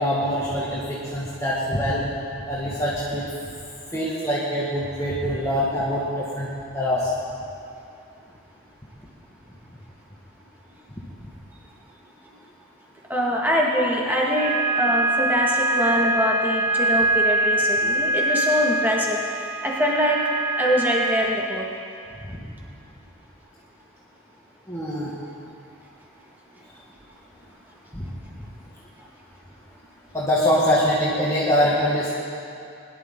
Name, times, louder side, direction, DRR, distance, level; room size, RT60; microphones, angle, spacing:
voice 1, 0.0-2.0 2.4-3.3 3.9-7.1 22.3-22.4 24.7-25.1 27.9-28.1 30.1-32.1, equal, 15° left, -7 dB, 1.6 m, -24 dB
voice 2, 13.1-19.2 19.6-20.2 20.6-21.6, equal, 10° right, -3 dB, 1.8 m, -23 dB
sound 1, 14.4-21.2, right 1 dB, 30° right, 2.4 m, -23 dB
21.5 x 11.5 x 3.8 m, 2.5 s
head